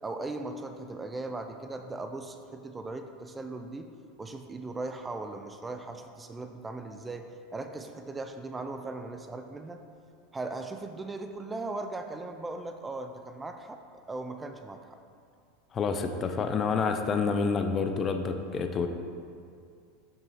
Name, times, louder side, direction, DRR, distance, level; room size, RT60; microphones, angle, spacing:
voice 1, 0.0-3.9 4.2-9.8 10.3-13.8 14.1-14.9, right 2 dB, 15° right, 6 dB, 0.5 m, -38 dB
voice 2, 15.7-18.9, left 5 dB, 30° left, 6 dB, 0.6 m, -28 dB
7.1 x 5.5 x 4.1 m, 2.3 s
figure-of-eight pair, 85°, 0 cm